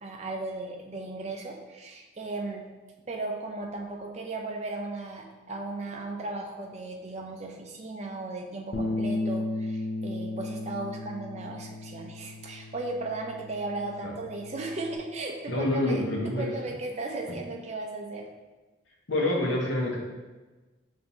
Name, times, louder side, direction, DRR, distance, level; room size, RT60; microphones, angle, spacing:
voice 1, 0.0-2.7 3.1-16.1 16.4-18.2, right 2 dB, 35° right, 1 dB, 0.5 m, -36 dB
Bass guitar, 8.7-15.0, left 2 dB, 55° left, 0.5 m, -35 dB
voice 2, 15.5-16.5 19.1-20.0, left 1 dB, 70° left, -2 dB, 0.8 m, -27 dB
5.3 x 2.6 x 2.9 m, 1.2 s
head